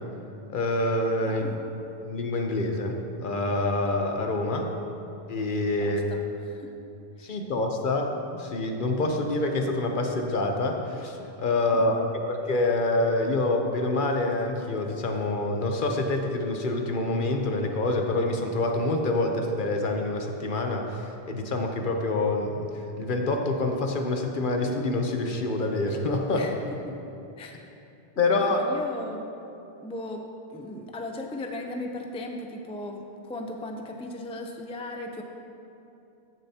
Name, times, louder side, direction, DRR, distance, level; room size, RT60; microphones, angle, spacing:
voice 1, 0.5-1.5 2.0-4.6 5.3-6.0 7.2-12.0 12.3-26.5 28.2-28.7, left 2 dB, 55° left, 3 dB, 0.9 m, -26 dB
voice 2, 1.2-1.6 5.8-6.7 7.2-7.3 11.7-11.8 26.3-26.6 26.9-27.0 27.4-27.7 28.4-29.3 29.8-30.2 30.5-35.2, left 1 dB, 10° left, 2 dB, 0.4 m, -37 dB
15.0 x 6.8 x 2.8 m, 2.8 s
omnidirectional pair, 1.0 m